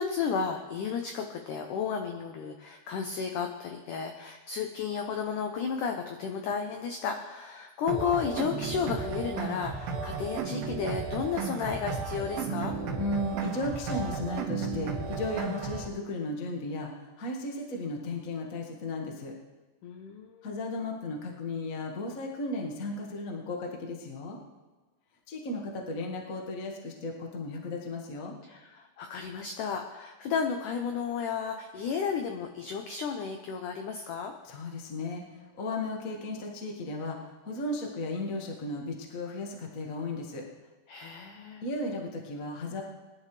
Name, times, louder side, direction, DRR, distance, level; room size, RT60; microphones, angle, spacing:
voice 1, 0.0-12.8 19.8-20.5 28.4-34.3 40.9-41.6, left 6 dB, 90° left, 4 dB, 1.8 m, -33 dB
sound 1, 7.9-15.9, right 5 dB, 65° right, 3.1 m, -34 dB
voice 2, 13.0-19.3 20.4-24.4 25.3-28.3 34.4-35.2 35.6-40.5 41.6-42.8, left 2 dB, 65° left, 0 dB, 0.8 m, -35 dB
21.5 x 11.5 x 3.3 m, 1.2 s
omnidirectional pair, 4.8 m